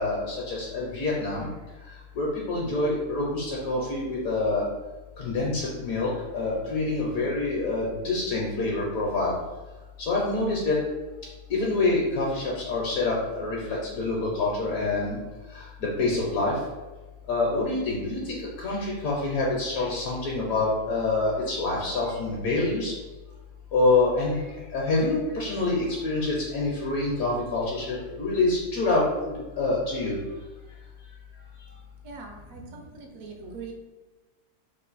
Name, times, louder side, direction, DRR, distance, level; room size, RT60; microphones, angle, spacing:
voice 1, 0.0-1.5 2.2-4.7 5.2-9.3 10.0-10.8 11.5-15.2 15.5-16.5 17.3-22.9 23.7-24.4 24.7-30.2, left 2 dB, 70° left, -3 dB, 1.1 m, -26 dB
voice 2, 32.0-33.7, right 4 dB, 70° right, 2 dB, 0.9 m, -42 dB
3.0 x 2.4 x 3.9 m, 1.2 s
omnidirectional pair, 1.6 m